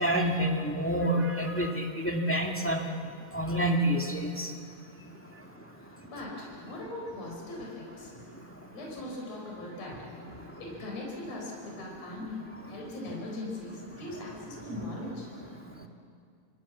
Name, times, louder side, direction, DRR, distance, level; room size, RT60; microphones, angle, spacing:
voice 1, 0.0-2.9 3.3-4.6 5.0-6.1 6.7-6.8 8.0-8.7 9.9-10.7 11.7-11.8 12.1-12.9 13.9-14.9 15.3-15.9, right 1 dB, 5° left, 1 dB, 1.2 m, -31 dB
voice 2, 6.0-8.1 8.7-10.0 10.5-15.3, left 1 dB, 60° left, -2 dB, 5.8 m, -40 dB
27.5 x 26.0 x 7.3 m, 2.3 s
omnidirectional pair, 3.4 m